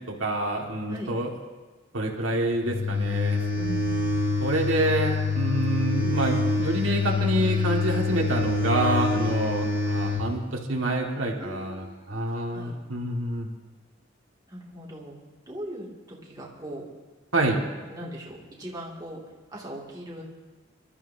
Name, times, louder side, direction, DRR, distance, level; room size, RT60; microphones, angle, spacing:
voice 1, 0.2-1.3 1.9-3.4 4.4-13.5 17.3-17.6, right 1 dB, 80° right, 0 dB, 1.8 m, -27 dB
sound 1, 2.6-10.2, left 3 dB, 70° left, 2.9 m, -26 dB
voice 2, 3.5-4.3 9.1-9.3 11.4-12.2 12.5-12.8 14.5-15.2 15.5-16.8 17.9-19.2 19.5-20.2, equal, 20° right, -4 dB, 2.3 m, -39 dB
26.5 x 12.5 x 2.7 m, 1.3 s
head